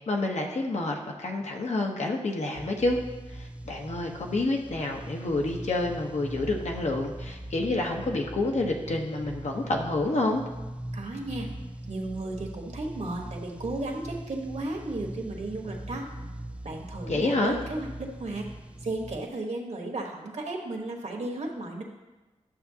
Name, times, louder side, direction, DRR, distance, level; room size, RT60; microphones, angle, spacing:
voice 1, 0.1-3.0 3.3-10.4 17.1-17.5, left 2 dB, 70° left, 1 dB, 1.0 m, -28 dB
sound 1, 2.6-19.3, right 1 dB, 10° right, 0.4 m, -41 dB
voice 2, 10.9-11.5 11.9-16.1 16.6-18.5 18.8-21.8, right 2 dB, 75° right, 1 dB, 1.3 m, -34 dB
11.0 x 7.1 x 2.8 m, 1.1 s
wide cardioid pair, 100°, 12 cm